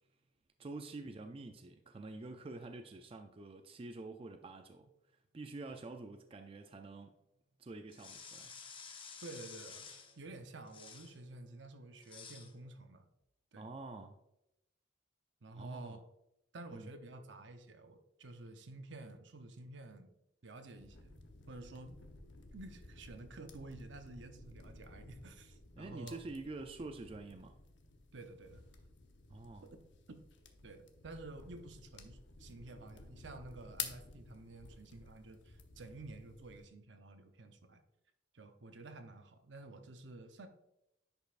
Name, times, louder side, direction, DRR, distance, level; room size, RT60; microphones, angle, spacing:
voice 1, 0.6-4.9 5.3-7.1 7.6-8.5 13.6-14.2 15.5-16.0 16.7-16.9 25.8-27.5 29.3-29.7, right 3 dB, 30° right, 6 dB, 0.4 m, -47 dB
sound 1, 7.9-10.2 10.7-11.2 12.0-12.5, left 6 dB, 30° left, 0.7 m, -51 dB
Bowed string instrument, 9.1-13.2, right 1 dB, 5° left, 1.0 m, -74 dB
voice 2, 9.2-13.1 13.5-13.7 15.4-16.0 16.5-20.1 20.4-22.0 22.5-26.2 28.1-28.6 29.6-29.8 30.1-30.2 30.6-37.8 38.3-40.5, right 2 dB, 75° right, 7 dB, 0.8 m, -51 dB
sound 2, 20.8-36.7, left 6 dB, 75° left, 0.8 m, -52 dB
10.0 x 5.3 x 2.5 m, 0.85 s
head